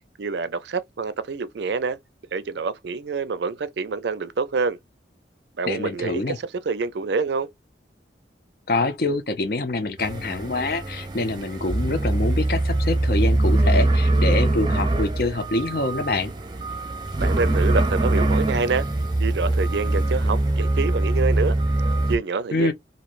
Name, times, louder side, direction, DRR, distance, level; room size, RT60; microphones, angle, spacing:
voice 1, 0.2-2.0 2.3-4.8 5.6-6.3 6.7-7.5 17.2-18.9 19.2-21.6 22.1-22.7, right 4 dB, 70° right, 0.4 m, -26 dB
voice 2, 5.7-6.4 8.7-16.3 22.5-22.7, left 2 dB, 55° left, 0.6 m, -25 dB
sound 1, 10.0-22.2, right 2 dB, 25° right, 0.6 m, -22 dB
3.1 x 2.6 x 2.5 m
head